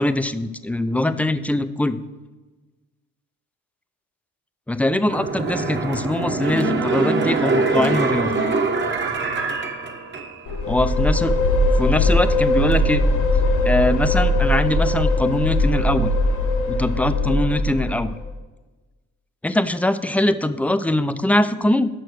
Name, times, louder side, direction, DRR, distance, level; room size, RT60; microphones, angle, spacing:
voice 1, 0.0-2.0 4.7-8.4 10.7-11.3 11.8-13.0 13.6-16.1 16.7-18.2 19.4-21.9, left 1 dB, 5° left, 12 dB, 0.4 m, -22 dB
sound 1, 5.0-10.6 11.0-11.1, right 3 dB, 40° right, 1.1 m, -23 dB
sound 2, 10.5-18.3, left 1 dB, 85° left, 1.2 m, -20 dB
6.6 x 5.4 x 6.3 m, 1.2 s
cardioid pair, 90°, 30 cm